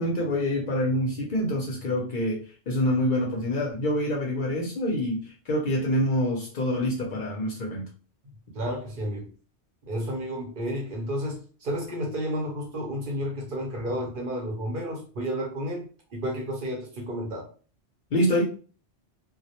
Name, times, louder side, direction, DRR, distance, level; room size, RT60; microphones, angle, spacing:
voice 1, 0.0-7.9 18.1-18.4, left 1 dB, 55° left, -1 dB, 0.6 m, -26 dB
voice 2, 8.5-9.3 9.8-17.5, equal, 55° right, 1 dB, 0.7 m, -31 dB
2.2 x 2.0 x 2.7 m, 0.38 s
omnidirectional pair, 1.2 m